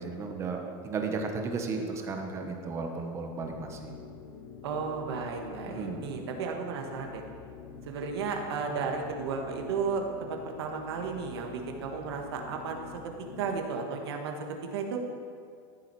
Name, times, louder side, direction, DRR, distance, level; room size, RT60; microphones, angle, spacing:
voice 1, 0.0-3.9 5.7-6.1, right 4 dB, 20° right, 4 dB, 1.0 m, -34 dB
sound 1, 3.3-13.7, left 5 dB, 65° left, 1.3 m, -47 dB
voice 2, 4.6-7.2 7.9-12.9 13.4-14.3 14.7-15.0, right 5 dB, 90° right, 2 dB, 1.6 m, -34 dB
14.0 x 7.2 x 4.7 m, 2.4 s
supercardioid pair, 160°, 13 cm